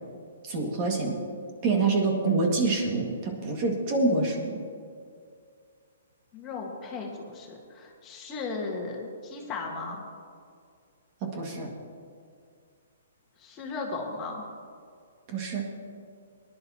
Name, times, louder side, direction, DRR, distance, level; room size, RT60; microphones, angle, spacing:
voice 1, 0.4-1.2 1.6-4.6 11.2-11.7 15.3-15.7, right 3 dB, 35° right, 1 dB, 1.9 m, -26 dB
voice 2, 6.3-10.0 13.4-14.4, left 3 dB, 20° left, 0 dB, 1.5 m, -36 dB
19.5 x 11.0 x 2.9 m, 2.3 s
hypercardioid pair, 155°, 0 cm